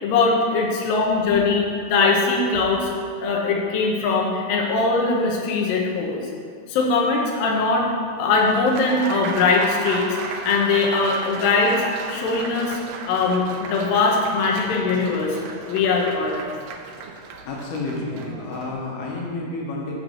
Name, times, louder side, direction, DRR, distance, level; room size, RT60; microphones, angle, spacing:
voice 1, 0.0-2.9 3.2-6.2 6.7-7.9 8.2-12.8 13.0-15.4 15.7-16.5, left 3 dB, 70° left, -1 dB, 2.6 m, -21 dB
Applause, 8.3-18.7, right 4 dB, 80° right, 2.2 m, -35 dB
voice 2, 17.4-19.9, left 2 dB, 90° left, -2 dB, 3.2 m, -30 dB
6.1 x 5.8 x 6.8 m, 2.1 s
omnidirectional pair, 4.4 m